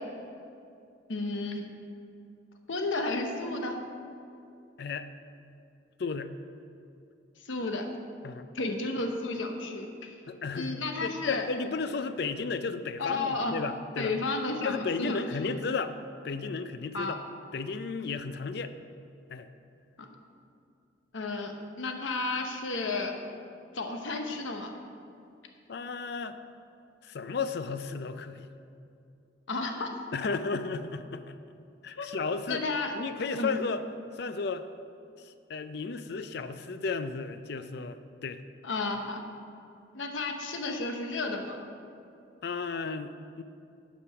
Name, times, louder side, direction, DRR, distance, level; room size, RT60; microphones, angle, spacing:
voice 1, 1.1-1.7 2.7-3.8 7.5-7.9 8.5-10.1 10.5-11.4 13.0-13.5 14.0-15.2 16.9-17.2 20.0-20.1 21.1-23.1 23.7-24.7 29.5-29.9 31.9-32.1 32.5-32.9 33.3-33.5 38.6-39.2 39.9-41.6, left 3 dB, 80° left, 4 dB, 0.9 m, -32 dB
voice 2, 6.0-6.3 8.2-8.4 10.3-14.2 14.6-15.9 16.2-17.2 17.5-18.7 19.3-19.5 25.7-26.4 27.0-28.5 30.1-31.3 31.8-32.6 32.9-33.8 34.1-34.6 35.2-38.4 42.4-43.4, left 4 dB, 55° left, 11 dB, 0.4 m, -34 dB
9.8 x 5.2 x 5.8 m, 2.6 s
head